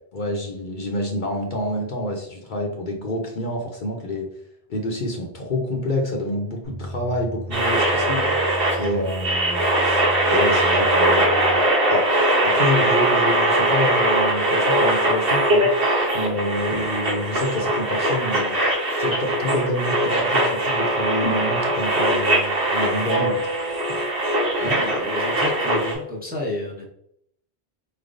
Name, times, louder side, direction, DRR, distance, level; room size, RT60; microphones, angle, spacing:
voice 1, 0.1-4.3 4.7-8.2 8.8-10.0 10.3-11.6 11.9-12.0 12.4-15.7 16.1-18.6 19.0-23.4, left 1 dB, 55° left, 1 dB, 0.8 m, -27 dB
sound 1, 6.6-11.5, equal, 85° right, 1.3 m, -35 dB
sound 2, 7.5-25.9, right 1 dB, 65° right, 1.2 m, -21 dB
voice 2, 24.6-26.9, left 1 dB, 10° right, -2 dB, 0.8 m, -30 dB
4.4 x 3.3 x 2.5 m, 0.72 s
omnidirectional pair, 1.1 m